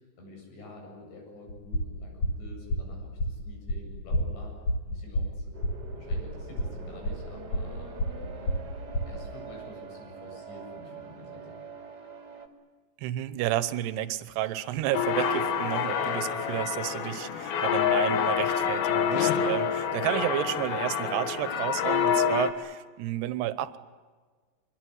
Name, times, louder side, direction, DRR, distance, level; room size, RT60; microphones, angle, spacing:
voice 1, 0.2-5.5 5.9-8.6 9.0-11.6, left 2 dB, 90° left, 1 dB, 10.0 m, -48 dB
sound 1, 1.5-9.2, equal, 45° left, 2.8 m, -30 dB
sound 2, 5.5-12.5, right 5 dB, 30° right, 2.2 m, -44 dB
voice 2, 13.0-23.8, right 13 dB, 80° right, 14 dB, 3.1 m, -31 dB
sound 3, 14.9-22.5, left 7 dB, 65° left, 3.5 m, -27 dB
25.5 x 23.5 x 9.6 m, 1.4 s
omnidirectional pair, 4.9 m